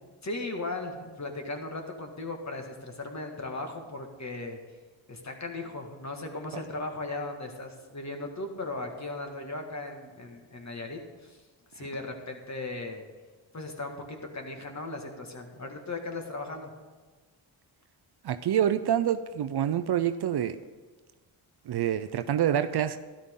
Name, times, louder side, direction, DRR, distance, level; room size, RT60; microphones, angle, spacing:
voice 1, 0.2-4.6 5.1-11.4 11.7-13.0 13.5-16.7, left 2 dB, 35° left, 1.9 m, -37 dB
voice 2, 18.2-20.6 21.7-23.0, right 10 dB, 55° right, 0.6 m, -26 dB
12.5 x 11.5 x 3.7 m
cardioid pair, 70°, 48 cm